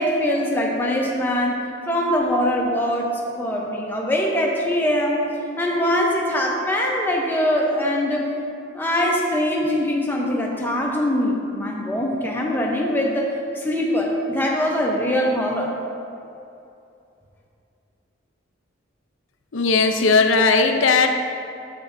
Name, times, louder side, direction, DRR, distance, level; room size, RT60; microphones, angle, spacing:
voice 1, 0.0-5.2 5.6-8.3 8.7-15.8, equal, 10° left, -1 dB, 0.8 m, -22 dB
voice 2, 19.5-21.1, left 4 dB, 80° left, 6 dB, 0.6 m, -17 dB
9.0 x 7.6 x 2.6 m, 2.6 s
head